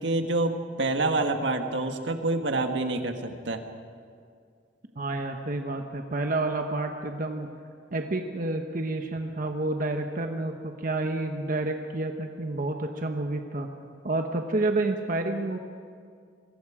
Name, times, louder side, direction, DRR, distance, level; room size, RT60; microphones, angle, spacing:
voice 1, 0.0-3.6, right 2 dB, 80° right, 5 dB, 1.6 m, -27 dB
voice 2, 4.9-7.5 7.9-13.7 14.0-15.6, right 2 dB, 50° right, 4 dB, 1.1 m, -29 dB
26.5 x 22.5 x 5.0 m, 2.2 s
head